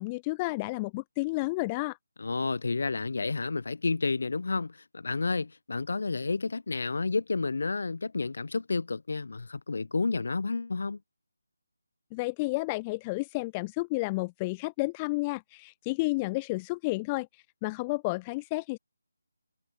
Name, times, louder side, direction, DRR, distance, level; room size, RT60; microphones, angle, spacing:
voice 1, 0.0-2.0 12.1-18.8, left 24 dB, 15° left, 0.9 m, -31 dB
voice 2, 2.2-11.0, left 3 dB, 55° left, 2.4 m, -30 dB
figure-of-eight pair, 155°, 0 cm